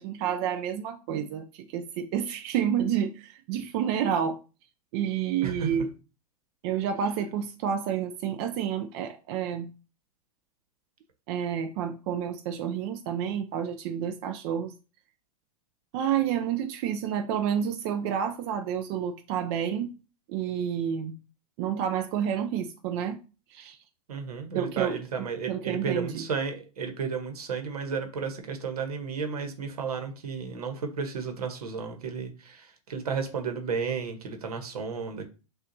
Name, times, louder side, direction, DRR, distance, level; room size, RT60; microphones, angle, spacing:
voice 1, 0.0-4.4 4.9-5.9 6.6-9.7 11.3-14.7 15.9-19.9 20.3-21.1 21.6-23.2 23.5-23.8 24.5-26.2, right 8 dB, 45° right, 0.4 m, -29 dB
voice 2, 24.1-35.2, right 5 dB, 80° right, 1.0 m, -33 dB
6.3 x 2.4 x 2.7 m
hypercardioid pair, 110°, 19 cm